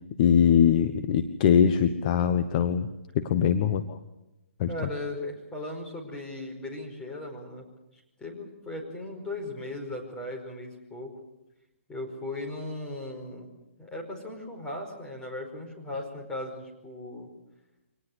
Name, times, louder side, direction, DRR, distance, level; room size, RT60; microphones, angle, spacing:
voice 1, 0.2-2.9 3.1-4.0 4.6-4.7, left 8 dB, 35° left, 10 dB, 1.1 m, -22 dB
voice 2, 4.7-7.6 8.2-11.1 11.9-13.5 13.8-17.3, left 2 dB, 10° left, 0 dB, 5.0 m, -37 dB
25.0 x 19.0 x 8.0 m, 0.94 s
hypercardioid pair, 150°, 7 cm